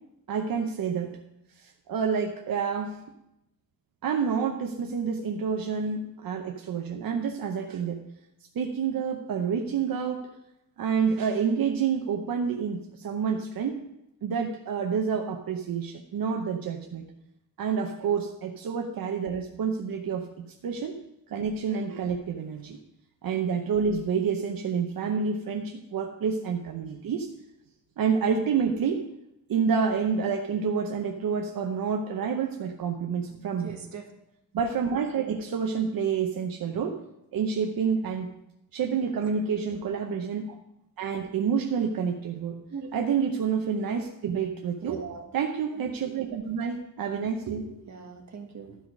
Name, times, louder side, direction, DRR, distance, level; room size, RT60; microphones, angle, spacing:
voice 1, 0.3-1.2 1.6-3.0 4.0-8.0 8.5-10.3 10.8-13.8 14.2-17.1 17.6-21.0 21.3-22.8 23.2-27.3 28.0-29.1 29.5-33.7 34.5-37.0 37.3-38.3 38.7-40.6 41.0-42.6 42.9-45.0 45.3-47.6, right 6 dB, 80° right, 0.8 m, -28 dB
voice 2, 33.6-34.1 39.2-39.4 42.7-42.9 44.8-45.3 45.7-46.2 47.4-48.8, right 6 dB, 55° right, 1.3 m, -41 dB
12.0 x 4.8 x 5.2 m
wide cardioid pair, 175°, 35 cm